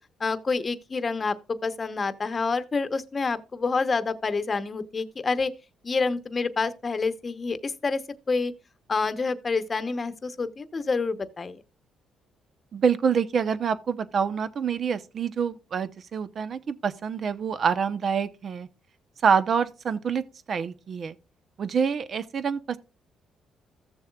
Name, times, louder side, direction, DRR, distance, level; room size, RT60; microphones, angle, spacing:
voice 1, 0.2-5.5 5.8-8.0 8.3-8.5 8.9-11.6, left 4 dB, 35° left, 0.9 m, -28 dB
voice 2, 12.7-18.7 19.2-20.2 20.5-21.2 21.6-22.8, right 6 dB, 55° right, 0.8 m, -26 dB
15.5 x 7.1 x 2.4 m
cardioid pair, 90°, 0 cm